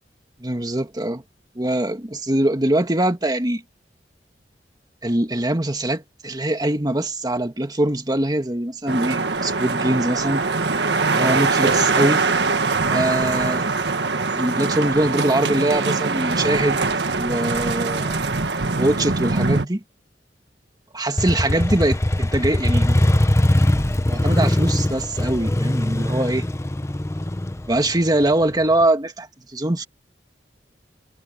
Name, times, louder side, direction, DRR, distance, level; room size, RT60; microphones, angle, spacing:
voice 1, 0.4-1.2 1.5-3.6 5.0-10.4 11.1-12.2 12.9-13.6 14.3-16.8 17.2-18.2 18.8-19.8 20.9-23.0 23.6-23.7 24.1-26.5 27.7-29.9, right 1 dB, 25° right, 1.7 m, -22 dB
sound 1, 8.9-19.7, right 3 dB, 75° right, 1.6 m, -22 dB
Motorcycle, 21.2-28.8, left 1 dB, 15° left, 0.7 m, -21 dB
head